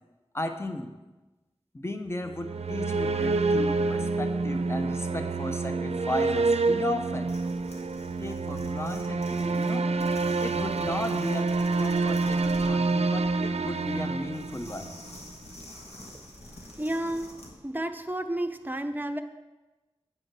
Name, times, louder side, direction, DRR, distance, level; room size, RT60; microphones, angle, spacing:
voice 1, 0.3-0.9 1.7-7.3 8.2-9.8 10.4-11.5 11.8-14.9, left 1 dB, 25° left, 6 dB, 0.7 m, -35 dB
sound 1, 2.3-15.1, right 3 dB, 90° right, 0.4 m, -27 dB
sound 2, 7.2-17.6, left 1 dB, 85° left, 1.4 m, -48 dB
voice 2, 16.8-17.3 17.6-19.2, right 1 dB, 20° right, 7 dB, 0.6 m, -31 dB
8.8 x 5.1 x 6.0 m, 1.1 s
wide cardioid pair, 50°, 10 cm